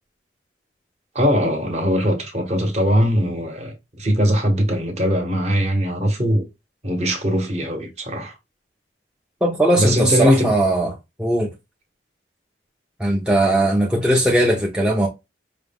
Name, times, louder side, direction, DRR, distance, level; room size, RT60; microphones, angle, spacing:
voice 1, 1.1-6.4 6.8-8.4 9.8-10.5, equal, 35° right, 0.9 m, -20 dB
voice 2, 9.4-10.9 11.2-11.5 13.0-15.1, right 1 dB, 5° right, 0.5 m, -19 dB
4.8 x 2.1 x 3.5 m
head